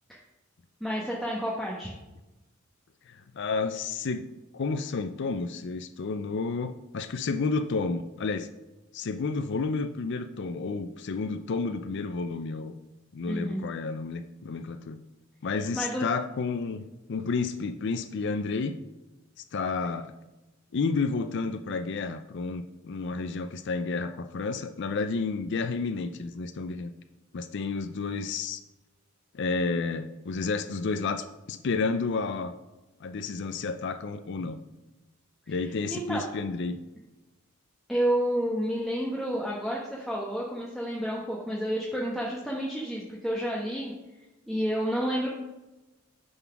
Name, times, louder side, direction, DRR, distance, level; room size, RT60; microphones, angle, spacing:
voice 1, 0.8-1.9 13.3-13.6 15.7-16.1 35.5-35.6 35.9-36.3 37.9-43.9 44.5-45.3, equal, ahead, -4 dB, 1.1 m, -30 dB
voice 2, 3.1-8.5 8.9-12.7 13.1-15.0 15.4-18.8 19.4-20.1 20.7-26.9 27.3-28.6 29.3-32.5 33.0-34.6 35.5-36.8, left 4 dB, 60° left, 9 dB, 0.5 m, -31 dB
9.2 x 4.0 x 5.8 m, 1.1 s
head